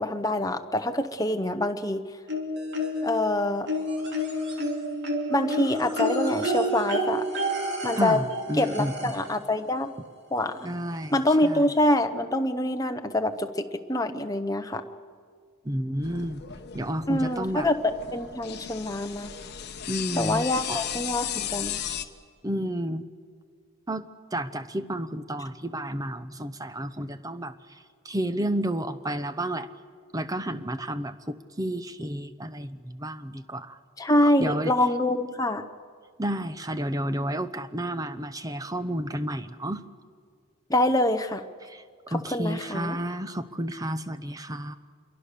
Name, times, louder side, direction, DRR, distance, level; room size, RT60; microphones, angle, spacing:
voice 1, 0.0-2.0 3.0-3.7 5.3-7.2 7.8-8.2 8.6-9.9 10.3-10.7 11.1-14.8 17.1-19.3 20.2-21.8 34.0-35.6 40.7-41.4 42.1-43.0, left 1 dB, 15° left, 7 dB, 0.9 m, -25 dB
sound 1, 2.3-3.2 3.7-9.4 10.6-10.7 11.0-11.1, equal, 50° right, 2.9 m, -29 dB
voice 2, 8.0-9.1 10.6-11.1 11.4-11.6 15.7-16.4 16.7-17.7 19.9-20.8 22.4-23.0 23.9-24.0 24.3-27.5 28.0-29.7 30.1-33.8 34.4-34.7 36.2-39.8 41.6-41.8 42.1-44.8, equal, 15° right, 11 dB, 0.7 m, -31 dB
sound 2, 16.0-22.0, left 10 dB, 50° left, 1.0 m, -35 dB
26.5 x 23.0 x 6.8 m, 2.1 s
head